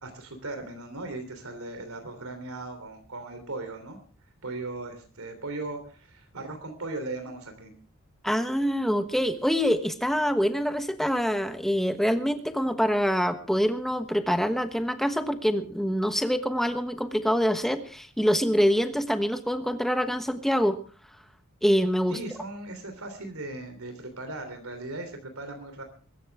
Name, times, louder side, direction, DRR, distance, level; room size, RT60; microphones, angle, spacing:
voice 1, 0.0-4.0 4.4-7.7 22.1-25.8, right 2 dB, 85° right, 6 dB, 3.3 m, -38 dB
voice 2, 8.2-20.8 21.6-22.2, equal, ahead, 8 dB, 1.2 m, -25 dB
23.0 x 14.0 x 3.5 m, 0.39 s
head